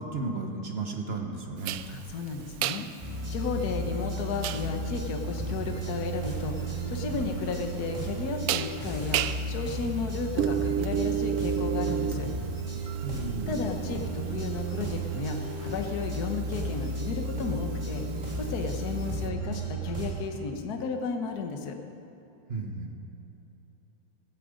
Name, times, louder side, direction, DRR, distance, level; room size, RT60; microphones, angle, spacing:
voice 1, 0.0-1.8 13.0-13.7 22.5-22.9, right 3 dB, 35° right, 3 dB, 1.1 m, -34 dB
sound 1, 1.6-19.3, right 12 dB, 85° right, 1.5 m, -35 dB
voice 2, 1.9-12.3 13.5-18.0 18.4-21.8, left 5 dB, 50° left, 5 dB, 1.5 m, -34 dB
sound 2, 3.0-20.1, right 2 dB, 20° right, 3.3 m, -34 dB
17.0 x 14.0 x 5.2 m, 2.9 s
omnidirectional pair, 2.4 m